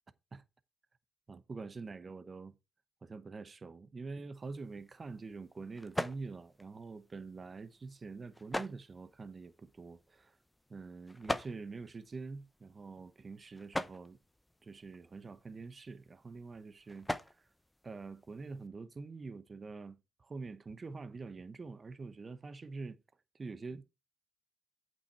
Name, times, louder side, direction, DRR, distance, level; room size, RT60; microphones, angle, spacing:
voice 1, 1.3-2.5 3.0-10.4 10.7-14.2 14.6-17.5 17.8-23.0 23.3-23.8, right 4 dB, 35° right, 0.9 m, -45 dB
sound 1, 4.3-18.7, left 1 dB, 10° left, 0.8 m, -45 dB
8.6 x 5.6 x 4.7 m
cardioid pair, 85°, 0 cm